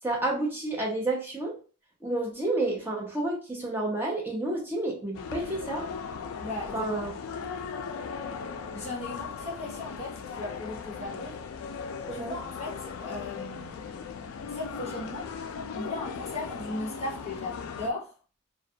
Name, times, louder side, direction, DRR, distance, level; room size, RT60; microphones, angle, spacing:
voice 1, 0.0-1.6 2.0-5.8 6.7-7.1 12.1-12.4, right 2 dB, 10° right, 0.6 m, -30 dB
sound 1, 5.1-17.9, left 6 dB, 70° left, 0.3 m, -38 dB
voice 2, 6.4-6.9 8.7-11.4 12.1-13.9 14.5-15.3 15.7-18.1, left 2 dB, 30° left, 0.8 m, -37 dB
2.3 x 2.2 x 2.7 m
head